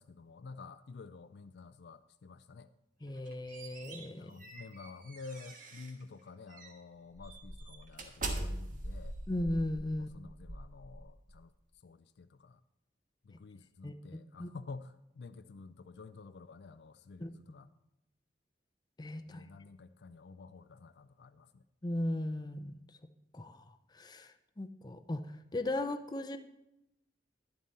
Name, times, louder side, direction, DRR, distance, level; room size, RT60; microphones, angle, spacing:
voice 1, 0.0-2.7 4.2-9.2 10.0-11.5 11.8-12.6 13.2-17.7 19.3-21.6, left 4 dB, 65° left, 11 dB, 0.4 m, -50 dB
voice 2, 3.0-4.3 9.3-10.1 13.8-13.9 14.4-14.5 17.2-17.3 19.0-19.4 21.8-22.8 23.3-23.6 23.9-25.2 25.5-26.4, left 1 dB, 25° left, 8 dB, 0.6 m, -36 dB
sound 1, 3.1-6.0 6.5-6.7 7.2-11.4, right 1 dB, 45° right, 1.4 m, -42 dB
11.0 x 11.0 x 4.2 m, 0.88 s
head